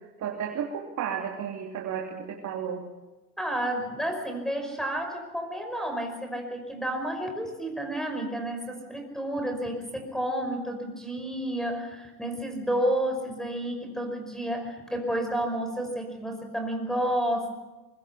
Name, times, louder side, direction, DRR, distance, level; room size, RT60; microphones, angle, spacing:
voice 1, 0.2-2.8, right 8 dB, 35° right, 1 dB, 3.1 m, -33 dB
voice 2, 3.4-17.6, right 1 dB, ahead, 5 dB, 5.5 m, -31 dB
24.0 x 23.0 x 5.8 m, 1.1 s
hypercardioid pair, 105°, 50 cm